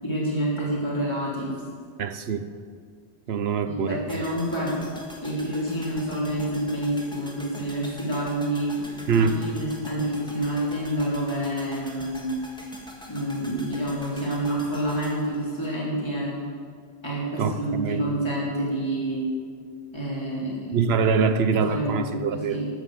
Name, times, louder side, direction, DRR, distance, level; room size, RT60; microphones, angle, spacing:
voice 1, 0.0-1.5 3.6-4.8 5.2-8.7 9.2-12.4 13.1-16.4 17.0-19.3 19.9-20.8 21.7-22.7, right 1 dB, 25° left, -6 dB, 3.4 m, -28 dB
voice 2, 2.0-2.5 3.3-4.0 9.1-9.5 17.4-18.0 20.7-22.6, right 5 dB, 70° right, 10 dB, 1.0 m, -24 dB
sound 1, 4.1-16.3 16.5-16.6, left 1 dB, 5° left, 1.7 m, -44 dB
13.0 x 8.2 x 7.8 m, 2.1 s
omnidirectional pair, 1.1 m